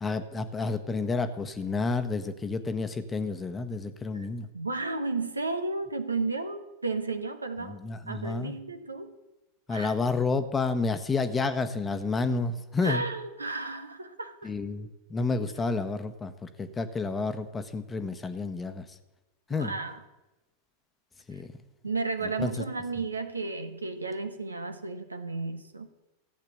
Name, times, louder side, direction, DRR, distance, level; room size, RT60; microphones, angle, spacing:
voice 1, 0.0-4.5 7.6-8.6 9.7-13.0 14.4-18.8 19.5-19.7 21.3-21.5 22.4-22.5, left 4 dB, 15° left, 10 dB, 1.2 m, -30 dB
voice 2, 4.5-7.8 8.1-9.1 9.7-10.1 12.8-14.5 19.5-20.0 21.3-21.4 21.8-25.9, right 3 dB, 80° right, 9 dB, 1.2 m, -33 dB
15.0 x 8.1 x 8.2 m, 1.0 s
figure-of-eight pair, 90°, 0 cm